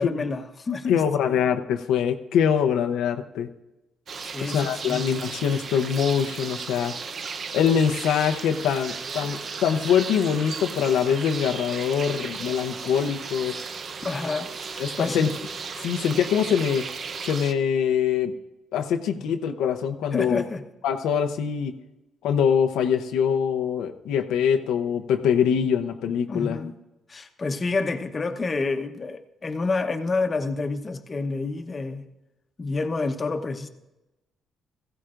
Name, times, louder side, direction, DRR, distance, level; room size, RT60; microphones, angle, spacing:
voice 1, 0.0-1.4 4.2-5.0 14.0-15.3 19.2-19.3 20.1-20.7 26.3-26.8 27.1-32.0 32.6-33.7, left 3 dB, 35° left, 7 dB, 0.9 m, -29 dB
voice 2, 0.9-3.5 4.4-6.9 7.5-13.6 14.8-15.3 15.8-16.9 17.2-18.3 18.7-20.4 20.8-21.8 22.2-26.6, left 8 dB, 90° left, 6 dB, 0.7 m, -23 dB
sound 1, 4.1-17.5, right 5 dB, 50° right, 0.7 m, -35 dB
17.0 x 15.0 x 2.5 m, 0.99 s
cardioid pair, 90°, 0 cm